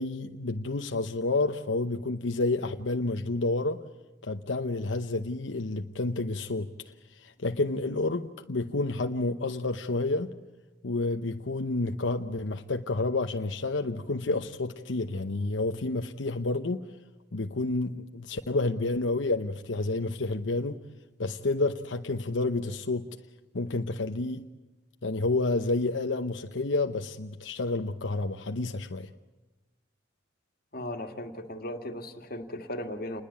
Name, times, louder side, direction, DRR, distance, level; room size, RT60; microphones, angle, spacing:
voice 1, 0.0-3.8 4.2-6.7 7.1-10.3 10.8-16.8 17.3-20.8 21.2-23.1 23.5-24.4 25.0-29.1, left 2 dB, 90° left, 6 dB, 0.9 m, -29 dB
voice 2, 30.7-33.2, left 1 dB, 55° left, 5 dB, 2.1 m, -37 dB
28.5 x 20.5 x 8.5 m, 1.1 s
head